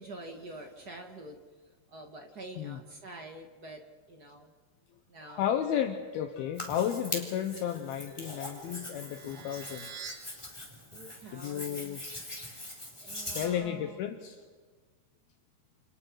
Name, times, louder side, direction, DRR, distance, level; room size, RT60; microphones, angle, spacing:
voice 1, 0.0-3.8 4.1-4.5 5.1-5.6 10.9-12.1 13.0-14.0, right 2 dB, 40° right, 2 dB, 1.4 m, -47 dB
voice 2, 5.3-10.1 11.3-12.0 13.0-14.4, left 10 dB, 75° left, 6 dB, 2.8 m, -33 dB
sound 1, 5.4-9.7, left 4 dB, 55° left, 3.0 m, -53 dB
Hands, 6.5-13.5, left 1 dB, 5° left, 3.8 m, -42 dB
sound 2, 7.9-10.1, right 6 dB, 80° right, 4.5 m, -47 dB
29.0 x 28.0 x 4.8 m, 1.4 s
omnidirectional pair, 4.7 m